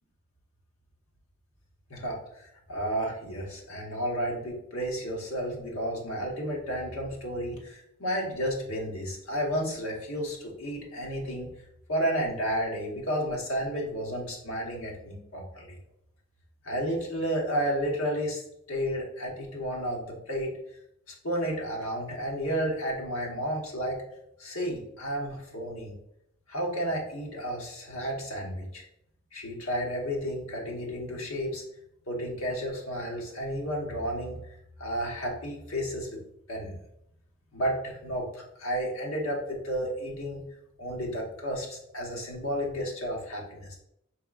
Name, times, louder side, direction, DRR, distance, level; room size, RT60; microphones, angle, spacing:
voice 1, 1.9-11.5 11.9-15.7 16.6-18.4 18.7-20.5 21.1-24.0 24.4-25.9 26.5-28.8 29.3-31.6 32.1-34.4 34.8-36.1 36.5-36.8 37.5-40.4 40.8-43.8, equal, 75° left, -1 dB, 1.2 m, -32 dB
4.6 x 3.5 x 2.4 m, 0.76 s
head